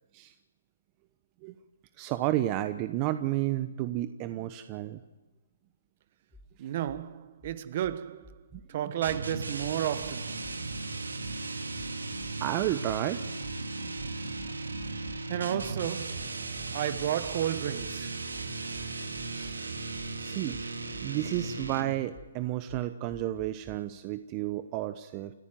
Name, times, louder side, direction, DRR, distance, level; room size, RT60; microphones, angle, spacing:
voice 1, 2.0-5.0 8.5-8.8 12.4-13.2 19.3-19.6 20.2-20.6 21.0-25.3, right 14 dB, 30° right, 1.0 m, -32 dB
sound 1, 6.3-6.5 6.9-7.0 7.4-8.7 9.0-9.2 9.6-10.9 11.2-11.4 11.8-13.0 13.4-17.4 17.8-23.8, left 1 dB, 5° left, 4.6 m, -54 dB
voice 2, 6.6-8.3 8.7-10.5 15.3-16.3 16.7-18.2, right 11 dB, 45° right, 1.4 m, -32 dB
sound 2, 9.0-22.1, right 3 dB, 90° right, 2.6 m, -36 dB
29.5 x 14.5 x 7.7 m
hypercardioid pair, 135°, 0 cm